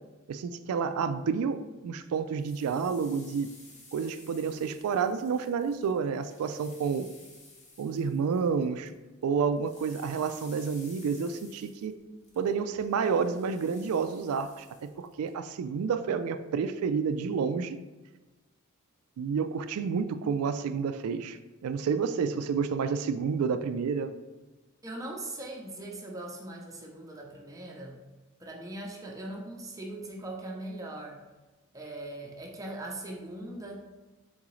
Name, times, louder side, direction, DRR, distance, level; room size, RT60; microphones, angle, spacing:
voice 1, 0.3-3.5 3.9-7.1 7.8-8.9 9.2-12.0 12.4-17.8 19.2-24.1, right 6 dB, 75° right, 10 dB, 0.3 m, -30 dB
sound 1, 2.1-9.0 9.2-15.3, left 2 dB, 30° left, 0.8 m, -54 dB
voice 2, 24.8-28.1 28.4-31.2 31.7-33.8, right 1 dB, 15° right, 0 dB, 0.6 m, -40 dB
3.9 x 3.7 x 3.1 m, 1.2 s
head